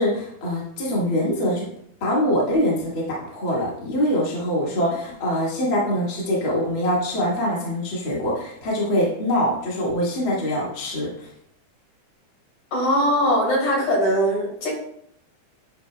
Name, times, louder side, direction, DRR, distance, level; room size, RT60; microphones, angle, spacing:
voice 1, 0.0-1.7 2.0-11.3, equal, 45° left, -5 dB, 2.1 m, -24 dB
voice 2, 12.7-14.7, equal, 70° left, -4 dB, 3.4 m, -21 dB
10.5 x 4.7 x 2.2 m, 0.69 s
omnidirectional pair, 3.5 m